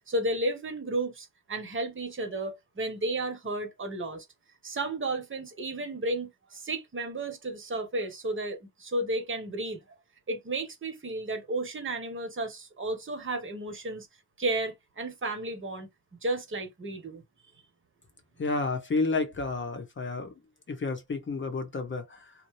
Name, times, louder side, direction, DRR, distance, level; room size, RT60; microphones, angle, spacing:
voice 1, 0.1-4.2 4.6-9.8 10.3-14.1 14.4-15.9 16.2-17.2, right 2 dB, 30° right, 1.2 m, -33 dB
voice 2, 18.4-20.3 20.7-22.3, left 3 dB, 30° left, 1.0 m, -31 dB
2.7 x 2.2 x 3.2 m
cardioid pair, 85°, 37 cm